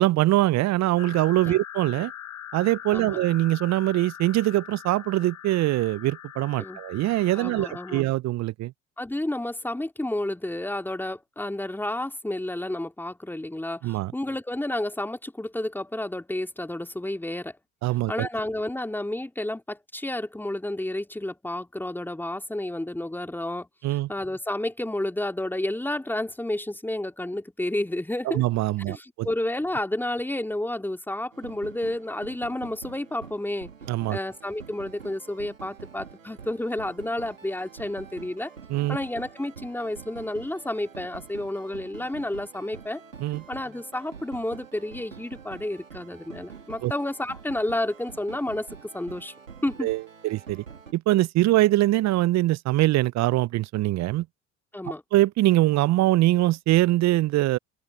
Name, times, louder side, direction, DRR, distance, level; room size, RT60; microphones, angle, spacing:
voice 1, 0.0-2.1 2.5-8.7 13.8-14.1 17.8-18.3 23.8-24.1 28.3-29.3 33.9-34.2 38.7-39.0 43.2-43.4 46.8-46.9 49.8-50.6 50.9-54.3 55.1-57.6, right 16 dB, 45° right, 0.7 m, -23 dB
sound 1, 1.0-8.0, left 10 dB, 85° left, 1.2 m, -42 dB
voice 2, 7.3-8.1 9.0-17.5 18.1-23.7 24.1-28.4 28.9-33.7 34.1-38.5 38.9-43.0 43.5-49.3 49.6-49.9 54.7-55.0, left 1 dB, 5° left, 2.4 m, -31 dB
sound 2, 31.3-50.9, right 6 dB, 90° right, 3.1 m, -46 dB
open air
figure-of-eight pair, 60°, 38 cm